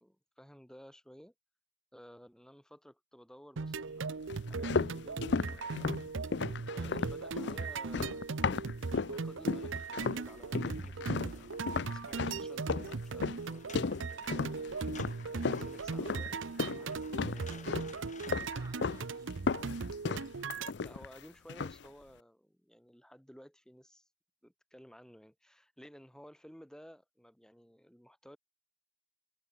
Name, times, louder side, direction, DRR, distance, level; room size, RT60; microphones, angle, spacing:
voice 1, 0.0-1.3 1.9-6.4 6.7-11.6 11.9-14.7 15.3-16.4 16.7-18.2 20.5-24.1 24.4-28.4, equal, 5° left, 2.9 m, -55 dB
sound 1, 3.6-20.7, right 4 dB, 70° right, 0.7 m, -38 dB
sound 2, 4.3-9.2 9.5-10.3 10.6-16.8 17.1-17.9 18.3-19.0 19.3-21.2 21.5-21.9, left 4 dB, 55° left, 0.5 m, -35 dB
sound 3, 9.2-18.3, left 5 dB, 35° left, 7.7 m, -57 dB
voice 2, 17.6-20.0, right 2 dB, 20° right, 5.7 m, -62 dB
head